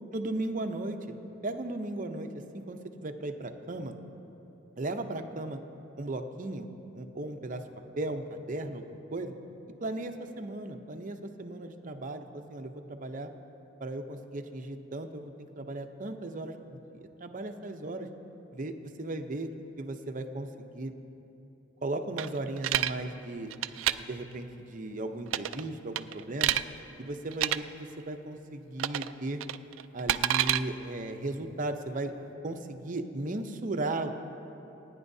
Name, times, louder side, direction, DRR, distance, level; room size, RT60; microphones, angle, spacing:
voice 1, 0.1-1.0 1.4-2.3 2.5-4.0 4.8-5.6 6.0-6.7 6.9-7.6 8.0-9.3 9.8-13.3 13.8-18.1 18.5-19.5 19.8-20.9 21.8-23.5 24.0-26.6 27.0-29.4 29.9-32.1 32.4-34.1, right 2 dB, 40° right, 6 dB, 0.7 m, -36 dB
sound 1, 22.2-22.9 23.5-23.9 25.3-25.6 26.0-26.6 27.3-27.6 28.8-29.1 29.4-30.6, right 12 dB, 85° right, 0.3 m, -28 dB
27.5 x 9.6 x 2.7 m, 2.9 s
head